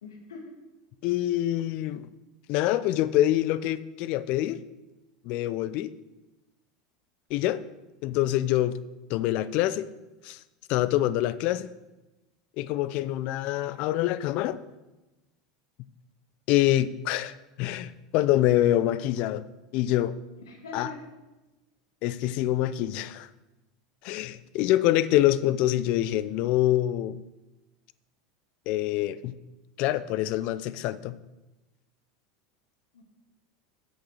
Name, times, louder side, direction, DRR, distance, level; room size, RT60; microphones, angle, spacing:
voice 1, 0.0-0.5 20.4-21.0 32.9-33.0, left 2 dB, 80° left, 1 dB, 1.8 m, -42 dB
voice 2, 1.0-2.1 2.5-4.6 5.2-5.9 7.3-7.6 8.0-8.8 9.1-9.9 10.2-10.4 10.7-11.7 12.6-14.6 16.5-19.5 19.7-20.2 20.7-20.9 22.0-23.3 24.0-27.2 28.7-29.4 29.8-31.2, left 14 dB, 55° left, 16 dB, 0.5 m, -25 dB
8.5 x 6.5 x 6.2 m, 1.1 s
hypercardioid pair, 80°, 2 cm